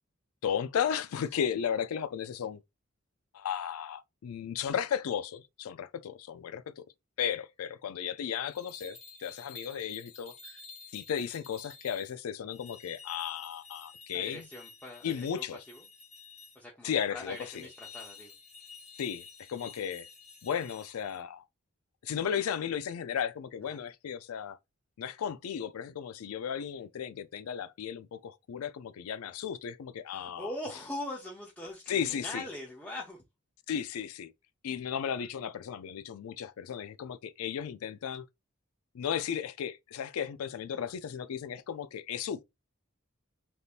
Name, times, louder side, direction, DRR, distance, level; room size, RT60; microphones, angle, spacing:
voice 1, 0.4-2.6 3.3-6.8 7.2-10.6 10.9-14.5 15.0-15.6 16.8-17.7 19.0-20.1 20.4-21.5 22.0-24.6 25.0-30.5 31.9-32.5 33.7-34.3 34.6-38.2 38.9-42.4, left 8 dB, 90° left, 0.4 m, -35 dB
sound 1, 8.5-12.1 12.5-16.6 17.2-21.2, left 5 dB, 30° left, 1.0 m, -51 dB
voice 2, 14.1-15.8 16.5-18.3 23.7-23.8 30.1-33.2, left 1 dB, 5° left, 0.6 m, -42 dB
3.5 x 2.7 x 2.4 m
head